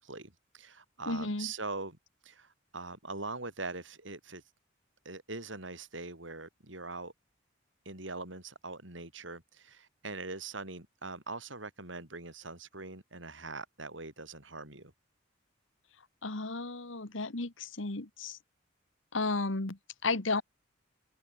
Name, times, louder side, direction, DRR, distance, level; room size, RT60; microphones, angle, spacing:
voice 1, 0.0-2.0 2.2-4.5 5.0-7.1 7.8-14.9, right 3 dB, 70° right, 7.4 m, -42 dB
voice 2, 1.1-1.5 16.2-18.4 19.1-20.4, left 3 dB, 80° left, 1.9 m, -33 dB
head